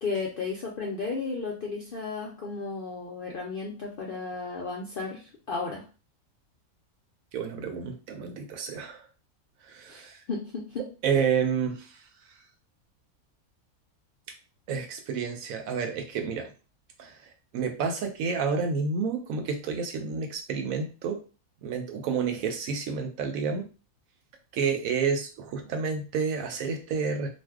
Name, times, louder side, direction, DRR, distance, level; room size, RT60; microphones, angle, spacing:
voice 1, 0.0-5.8 9.9-10.8, left 4 dB, 65° left, -2 dB, 0.5 m, -34 dB
voice 2, 7.3-9.1 9.6-10.2 11.0-12.0 14.7-16.5 17.0-21.2 21.6-23.7 24.5-27.3, right 6 dB, 75° right, 5 dB, 1.0 m, -30 dB
2.5 x 2.2 x 3.4 m, 0.34 s
omnidirectional pair, 1.5 m